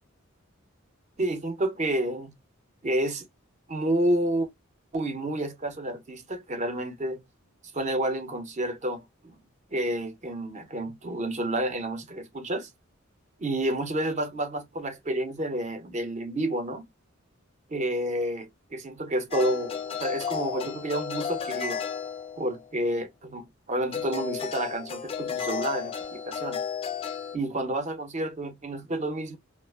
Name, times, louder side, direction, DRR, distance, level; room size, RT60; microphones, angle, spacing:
voice 1, 1.2-2.3 2.8-3.3 3.7-4.5 4.9-7.2 7.7-9.4 9.7-12.7 13.4-16.9 17.7-21.8 22.4-26.6 27.3-29.4, right 1 dB, 35° right, 0.6 m, -30 dB
sound 1, 19.3-22.7 23.9-27.4, left 7 dB, 25° left, 0.3 m, -33 dB
2.4 x 2.3 x 2.3 m
head